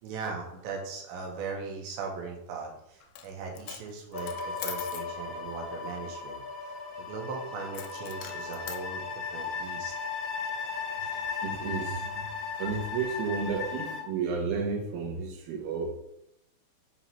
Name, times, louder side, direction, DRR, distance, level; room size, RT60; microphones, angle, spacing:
voice 1, 0.0-6.4 6.6-9.9, right 4 dB, 85° right, 0 dB, 3.4 m, -39 dB
Coin (dropping), 3.0-3.3 3.6-5.1 7.7-8.8, left 10 dB, 80° left, 2.3 m, -42 dB
sound 1, 4.1-14.0, left 5 dB, 55° left, 2.0 m, -36 dB
voice 2, 11.0-15.9, right 5 dB, 65° right, -2 dB, 2.9 m, -33 dB
7.8 x 3.0 x 5.8 m, 0.78 s
omnidirectional pair, 5.1 m